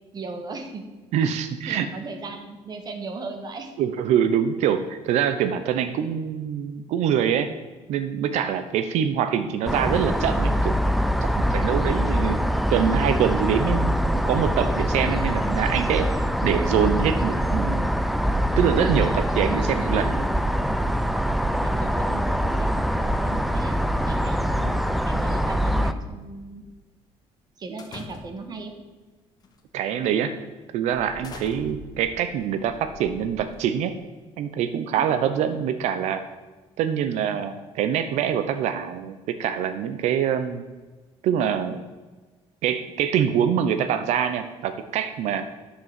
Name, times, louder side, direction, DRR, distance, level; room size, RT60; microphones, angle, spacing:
voice 1, 0.1-0.9 1.7-3.7 21.6-24.7 25.1-26.6 27.6-28.7 35.0-35.2, right 3 dB, 35° right, 6 dB, 1.6 m, -38 dB
voice 2, 1.1-1.9 3.8-7.5 7.9-10.8 11.2-12.4 12.7-16.1 16.4-17.9 18.6-20.3 24.6-24.7 29.7-30.3 30.7-33.9 34.4-36.2 36.8-40.6 41.2-41.8 42.6-45.4, right 8 dB, 80° right, 10 dB, 0.8 m, -24 dB
Quiet office, 9.7-25.9, equal, ahead, 0.5 m, -24 dB
sound 1, 27.8-28.6 29.4-29.7 30.1-30.3 30.9-33.8, left 4 dB, 35° left, 1.4 m, -44 dB
11.0 x 6.8 x 7.5 m, 1.3 s
cardioid pair, 150°, 11 cm